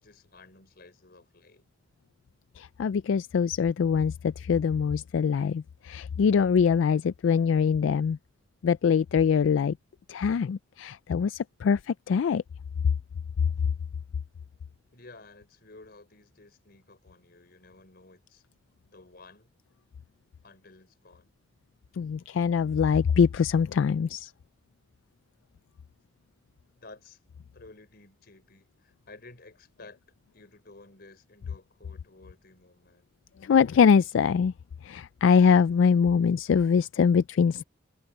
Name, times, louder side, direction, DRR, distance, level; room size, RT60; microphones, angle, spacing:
voice 1, 0.0-1.7 14.9-18.4 18.8-19.5 20.4-21.3 26.8-27.2 27.5-30.0 30.3-33.1, left 3 dB, 55° left, 4.3 m, -53 dB
voice 2, 2.6-8.2 8.6-9.8 10.1-12.4 22.0-24.3 33.4-34.5 34.8-37.6, left 6 dB, 75° left, 0.3 m, -23 dB
head